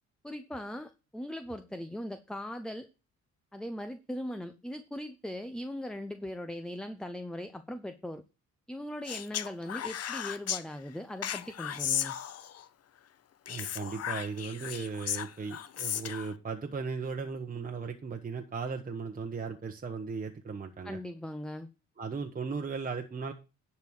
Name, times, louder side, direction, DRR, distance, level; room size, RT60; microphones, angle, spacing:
voice 1, 0.2-2.9 3.5-8.2 8.7-12.2 20.8-21.7, left 1 dB, 5° left, 0.8 m, -39 dB
Speech, 9.1-10.6 11.2-12.7 13.5-16.3, left 10 dB, 55° left, 0.8 m, -35 dB
voice 2, 13.5-21.0 22.0-23.3, right 5 dB, 30° right, 1.2 m, -37 dB
10.5 x 4.4 x 6.5 m
cardioid pair, 90°, 30 cm